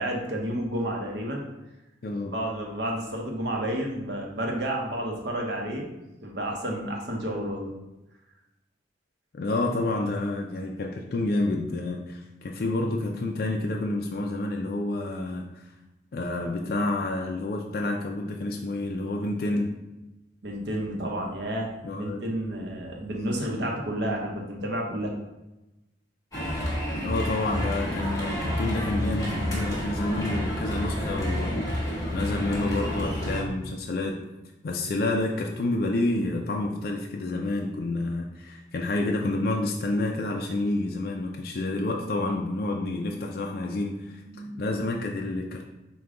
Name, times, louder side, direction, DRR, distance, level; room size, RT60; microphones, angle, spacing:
voice 1, 0.0-1.4 2.3-5.9 6.2-7.7 20.4-25.1 44.3-44.5, right 1 dB, 65° right, 0 dB, 0.8 m, -31 dB
voice 2, 2.0-2.3 9.3-15.4 16.1-19.7 21.8-22.2 27.0-34.2 34.6-44.2 44.6-45.7, left 2 dB, 50° left, 0 dB, 0.4 m, -29 dB
sound 1, 26.3-33.4, equal, 20° left, 1.1 m, -29 dB
4.9 x 2.2 x 3.7 m, 0.99 s
head